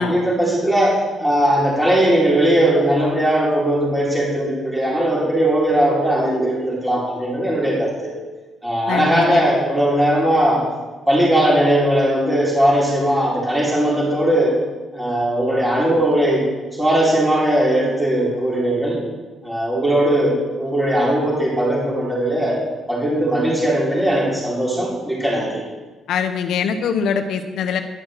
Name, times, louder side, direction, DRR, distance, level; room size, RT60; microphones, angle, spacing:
voice 1, 0.0-8.1 8.6-10.6 11.1-14.5 14.9-16.4 16.8-19.0 19.4-22.6 22.9-25.6, right 1 dB, 5° right, -6 dB, 3.8 m, -19 dB
voice 2, 8.9-9.4 26.1-27.8, left 6 dB, 75° left, 7 dB, 0.8 m, -22 dB
11.0 x 6.3 x 7.6 m, 1.3 s
cardioid pair, 90°, 0 cm